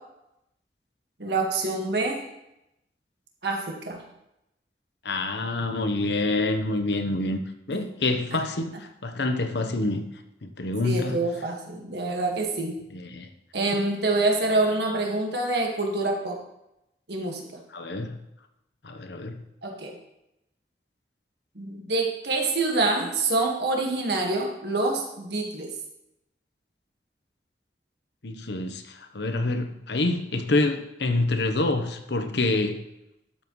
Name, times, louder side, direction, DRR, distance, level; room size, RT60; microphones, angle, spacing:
voice 1, 1.2-2.2 3.4-4.0 10.8-12.8 13.5-16.4 17.1-17.4 19.6-20.0 21.6-25.7, right 2 dB, 75° right, 1 dB, 1.7 m, -26 dB
voice 2, 5.0-7.4 7.7-10.1 10.4-11.3 12.9-13.3 17.7-18.2 18.8-19.4 28.2-32.8, left 2 dB, 80° left, 7 dB, 1.0 m, -27 dB
12.0 x 7.5 x 3.2 m, 0.86 s
head